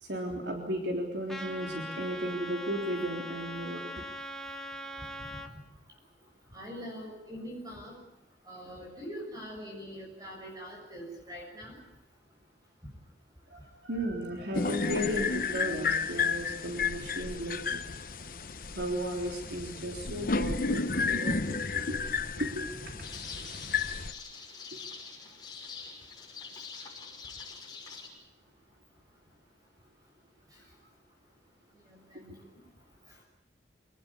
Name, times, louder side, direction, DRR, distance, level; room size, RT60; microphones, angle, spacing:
voice 1, 0.0-4.0 13.5-17.8 18.8-23.0 24.7-24.8, equal, 75° right, 1 dB, 3.6 m, -35 dB
Trumpet, 1.3-5.5, equal, 5° left, 1.6 m, -41 dB
voice 2, 6.5-7.9 8.5-11.8 31.9-32.4, equal, 20° right, 0 dB, 6.7 m, -43 dB
sound 1, 14.5-24.1, left 4 dB, 50° left, 0.9 m, -32 dB
sound 2, 23.0-28.1, left 5 dB, 25° left, 6.1 m, -44 dB
26.0 x 19.5 x 8.6 m, 0.89 s
head